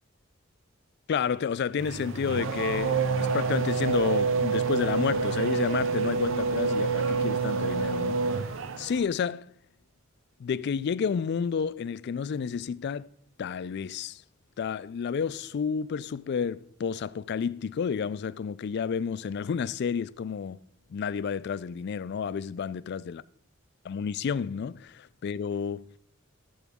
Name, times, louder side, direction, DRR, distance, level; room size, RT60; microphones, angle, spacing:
voice 1, 1.1-8.4 8.8-9.5 10.4-13.1 13.4-14.2 14.6-20.6 20.9-23.2 23.8-25.8, left 6 dB, 55° left, 0.3 m, -30 dB
Race car auto racing / Accelerating revving vroom, 1.8-9.1, right 4 dB, 65° right, 0.6 m, -27 dB
12.0 x 7.0 x 3.6 m
head